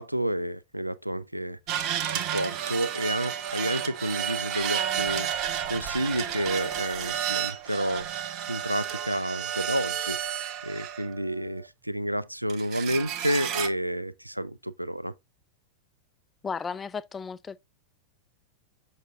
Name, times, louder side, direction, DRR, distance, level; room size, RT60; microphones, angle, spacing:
voice 1, 0.0-1.6 2.1-5.3 5.7-8.1 8.5-15.1, right 1 dB, 90° right, 0.4 m, -30 dB
sound 1, 1.7-11.3 12.5-13.7, right 9 dB, 40° right, 0.8 m, -31 dB
voice 2, 16.4-17.6, left 5 dB, 20° left, 0.4 m, -34 dB
6.5 x 6.2 x 2.5 m
figure-of-eight pair, 90°, 0 cm